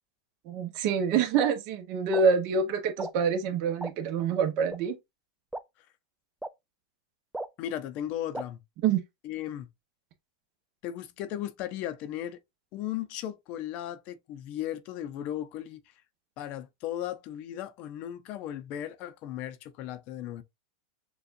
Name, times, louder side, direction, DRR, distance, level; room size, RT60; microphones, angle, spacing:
voice 1, 0.4-5.0 8.8-9.0, right 6 dB, 50° right, 1.0 m, -26 dB
sound 1, 1.4-1.5 2.1-2.2 3.0-3.1 3.8-3.9 4.7-4.8 5.5-5.6 6.4-6.5 7.3-7.5 8.3-8.4, right 2 dB, 5° right, 0.4 m, -34 dB
voice 2, 7.6-8.6 9.2-9.7 10.8-12.4 12.7-15.8 16.4-20.4, left 11 dB, 45° left, 0.6 m, -36 dB
6.7 x 2.4 x 2.6 m
supercardioid pair, 130°, 3 cm